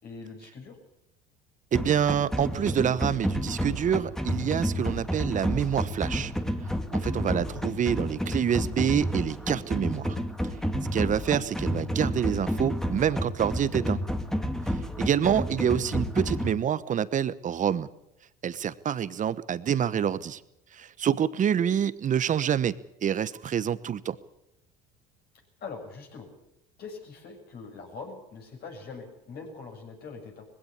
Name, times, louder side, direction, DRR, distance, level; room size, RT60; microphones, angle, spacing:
voice 1, 0.0-0.8 7.5-7.6 25.6-26.3 26.8-30.5, left 4 dB, 50° left, 3 dB, 7.0 m, -42 dB
sound 1, 1.7-16.5, equal, ahead, 2.0 m, -30 dB
voice 2, 1.7-6.3 6.9-10.2 10.9-14.0 15.0-17.9 18.4-20.4 20.7-22.7 23.0-24.2, right 9 dB, 40° right, 16 dB, 1.2 m, -27 dB
20.0 x 16.5 x 8.4 m, 0.84 s
supercardioid pair, 85°, 21 cm